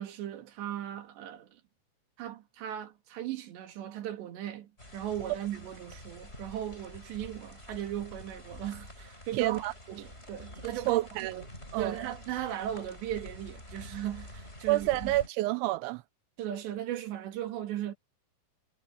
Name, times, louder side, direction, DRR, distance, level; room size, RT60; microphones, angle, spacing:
voice 1, 0.0-1.6 2.2-9.6 9.9-11.1 11.8-15.1 16.4-17.9, right 11 dB, 65° right, 4.3 m, -37 dB
sound 1, 4.8-15.3, left 1 dB, 10° left, 8.1 m, -48 dB
voice 2, 9.3-9.7 10.6-11.5 11.7-12.0 14.7-16.0, right 17 dB, 85° right, 2.9 m, -29 dB
omnidirectional pair, 5.6 m